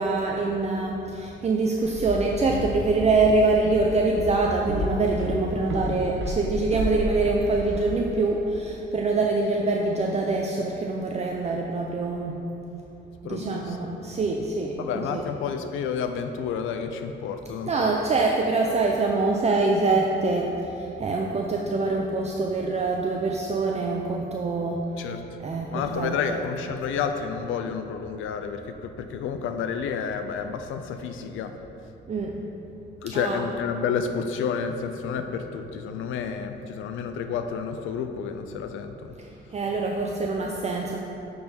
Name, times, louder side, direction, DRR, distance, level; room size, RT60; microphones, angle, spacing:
voice 1, 0.0-12.4 13.2-15.2 17.6-24.8 25.4-26.4 32.1-32.4 33.1-33.4 39.2-41.0, right 3 dB, 35° right, 0 dB, 0.5 m, -25 dB
Walk footsteps, 1.8-7.9, equal, 70° right, 0.9 m, -32 dB
voice 2, 13.2-13.8 14.8-17.9 25.0-25.2 25.7-31.5 33.0-39.1, left 6 dB, 85° left, 7 dB, 0.5 m, -30 dB
8.2 x 4.0 x 4.4 m, 2.9 s
cardioid pair, 90°, 20 cm